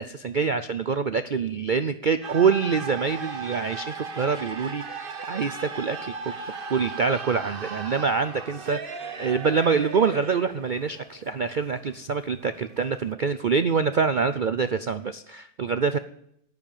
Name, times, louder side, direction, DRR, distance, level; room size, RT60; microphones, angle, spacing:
voice 1, 0.0-6.1 6.7-16.0, right 5 dB, 55° right, 11 dB, 0.5 m, -25 dB
sound 1, 2.2-13.1, right 4 dB, 40° right, 1.3 m, -37 dB
11.5 x 10.0 x 9.1 m, 0.72 s
omnidirectional pair, 1.6 m